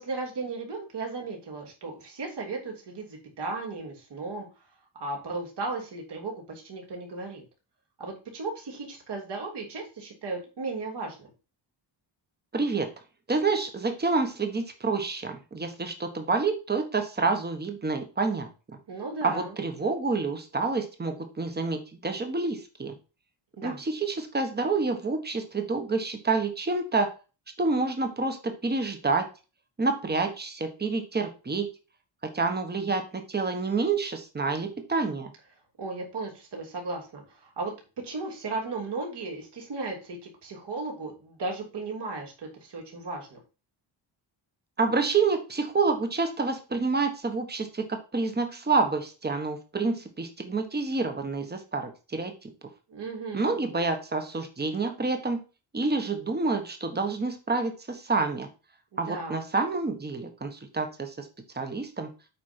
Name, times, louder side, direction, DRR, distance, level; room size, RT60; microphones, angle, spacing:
voice 1, 0.0-4.5 4.9-7.4 8.0-11.3 18.9-19.6 23.6-23.8 35.8-37.7 38.0-43.4 52.9-53.6 58.9-59.4, right 3 dB, 55° right, 0 dB, 3.3 m, -35 dB
voice 2, 12.5-12.9 13.3-18.8 19.2-22.9 23.6-27.1 27.6-29.3 29.8-31.7 32.2-35.3 44.8-52.5 53.3-55.4 55.7-58.5 59.0-61.3 61.5-62.1, right 3 dB, 20° right, 6 dB, 1.4 m, -28 dB
8.4 x 5.3 x 4.5 m, 0.32 s
wide cardioid pair, 180°, 47 cm